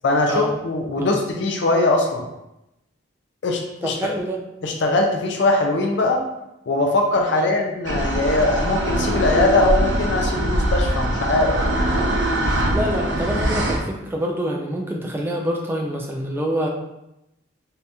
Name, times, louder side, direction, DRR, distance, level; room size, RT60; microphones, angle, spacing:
voice 1, 0.0-2.2 3.4-4.0 4.6-6.2 6.7-11.6, left 2 dB, 60° left, 2 dB, 0.4 m, -21 dB
voice 2, 3.8-4.4 7.3-7.5 12.6-16.7, right 1 dB, 10° right, 0 dB, 0.3 m, -26 dB
sound 1, 7.8-13.8, right 1 dB, 65° right, 0.5 m, -22 dB
2.7 x 2.5 x 3.4 m, 0.89 s
head